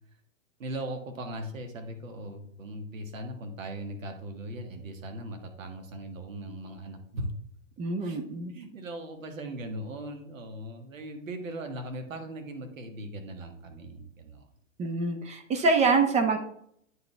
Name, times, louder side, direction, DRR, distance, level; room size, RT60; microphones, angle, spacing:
voice 1, 0.6-7.3 8.0-8.2 8.5-14.5, right 1 dB, 80° right, 5 dB, 1.7 m, -39 dB
voice 2, 7.8-8.5 14.8-16.4, right 3 dB, 15° right, 7 dB, 0.6 m, -25 dB
9.1 x 4.9 x 3.3 m, 0.69 s
hypercardioid pair, 120°, 39 cm